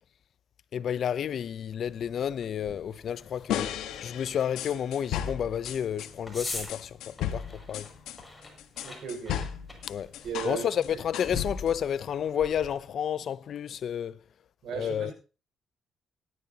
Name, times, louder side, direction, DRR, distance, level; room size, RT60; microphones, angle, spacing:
voice 1, 0.7-3.7 4.0-7.9 9.9-10.1 10.4-14.2 14.7-15.1, left 9 dB, 60° left, 0.5 m, -31 dB
sound 1, 1.8-12.8, left 2 dB, 10° left, 6.1 m, -45 dB
sound 2, 3.5-6.1 6.7-10.6 10.8-11.8, left 10 dB, 90° left, 1.2 m, -35 dB
voice 2, 8.8-9.4 10.2-10.7 14.6-15.1, right 7 dB, 75° right, 5.5 m, -35 dB
18.5 x 11.5 x 2.9 m
cardioid pair, 90°, 0 cm